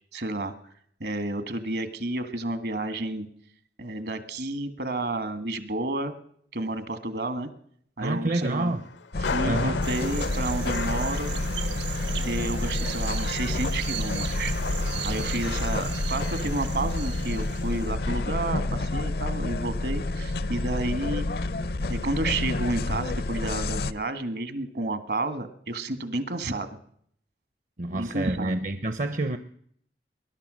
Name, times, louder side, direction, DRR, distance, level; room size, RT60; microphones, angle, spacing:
voice 1, 0.1-0.7 1.0-3.3 3.8-6.1 6.5-7.5 8.0-8.7 9.2-11.3 12.2-14.5 15.0-21.2 21.9-26.8 27.9-28.6, right 2 dB, 65° right, 12 dB, 1.5 m, -31 dB
voice 2, 8.0-8.8 9.4-9.8 27.8-29.4, right 2 dB, 45° right, 10 dB, 0.7 m, -28 dB
sound 1, 8.4-18.7, left 5 dB, 85° left, 0.8 m, -39 dB
sound 2, 9.1-23.9, left 2 dB, 60° left, 0.5 m, -29 dB
sound 3, 9.8-17.9, right 7 dB, 90° right, 1.3 m, -37 dB
20.5 x 11.5 x 6.2 m, 0.66 s
head